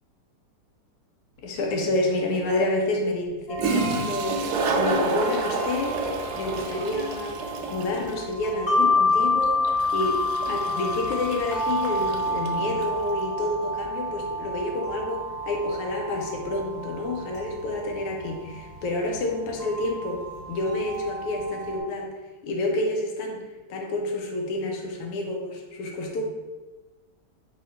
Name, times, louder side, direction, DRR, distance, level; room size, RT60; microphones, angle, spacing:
voice 1, 1.4-4.4 4.7-7.4 7.7-22.1 22.4-23.4 23.7-26.2, left 2 dB, 90° left, 1 dB, 1.7 m, -29 dB
Toilet flush, 1.6-1.7 3.3-3.4 3.6-13.0, right 3 dB, 85° right, 0.9 m, -30 dB
sound 1, 3.5-21.8, left 1 dB, 65° left, 0.6 m, -29 dB
4.2 x 2.8 x 4.3 m, 1.2 s
omnidirectional pair, 2.4 m